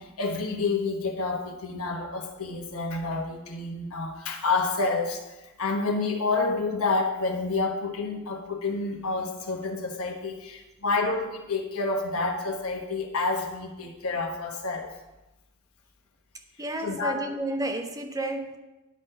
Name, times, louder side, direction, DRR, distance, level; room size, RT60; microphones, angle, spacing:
voice 1, 0.0-5.2 5.6-14.9 16.8-17.1, left 3 dB, 75° left, 1 dB, 1.3 m, -29 dB
voice 2, 16.6-18.6, right 1 dB, 15° right, 5 dB, 0.6 m, -31 dB
10.5 x 4.2 x 5.4 m, 1.0 s
head